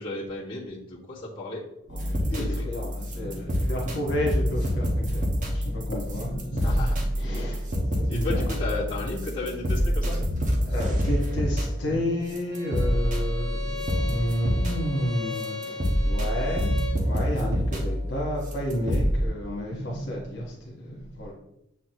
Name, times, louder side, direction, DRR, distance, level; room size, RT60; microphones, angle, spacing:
voice 1, 0.0-1.6 2.3-2.7 6.5-7.0 8.1-10.2, left 2 dB, 25° left, -9 dB, 1.9 m, -34 dB
voice 2, 1.9-8.5 10.6-21.3, equal, 70° left, -3 dB, 1.7 m, -31 dB
sound 1, 1.9-11.8 12.3-14.9 15.4-19.3, equal, 40° right, 1.2 m, -27 dB
Bowed string instrument, 12.5-17.0, left 5 dB, 65° right, 2.3 m, -37 dB
7.3 x 4.2 x 3.1 m, 0.82 s
head